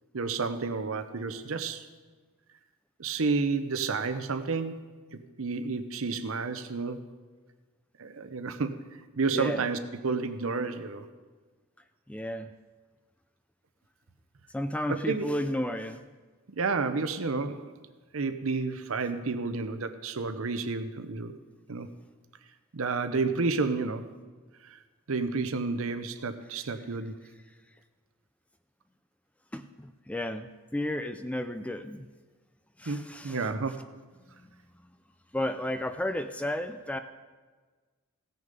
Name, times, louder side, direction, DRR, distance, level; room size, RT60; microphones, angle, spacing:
voice 1, 0.1-1.9 3.0-7.1 8.0-8.7 9.2-11.1 14.9-15.3 16.5-17.7 18.1-21.3 21.7-21.9 22.7-24.1 24.6-24.8 25.1-27.2 32.9-33.9, right 4 dB, 65° right, 10 dB, 0.7 m, -31 dB
voice 2, 9.3-9.6 12.1-12.5 14.5-16.0 29.5-32.1 32.8-33.4 35.3-37.0, left 1 dB, 5° left, 9 dB, 0.3 m, -32 dB
16.0 x 6.6 x 5.3 m, 1.4 s
head